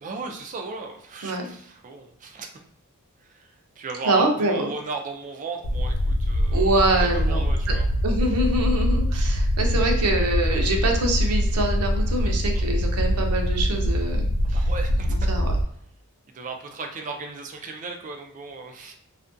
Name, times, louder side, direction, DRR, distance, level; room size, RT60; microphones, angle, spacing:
voice 1, 0.0-2.5 3.3-3.5 3.8-6.8 7.1-7.9 9.1-9.3 12.5-12.7 14.5-15.1 16.3-18.9, right 4 dB, 35° right, 3 dB, 0.4 m, -36 dB
voice 2, 4.1-4.7 6.5-7.4 8.0-14.7 15.1-15.5, right 2 dB, 85° right, 3 dB, 0.5 m, -25 dB
sound 1, 5.6-15.6, equal, 65° left, 0.3 m, -23 dB
2.4 x 2.2 x 2.5 m, 0.65 s
head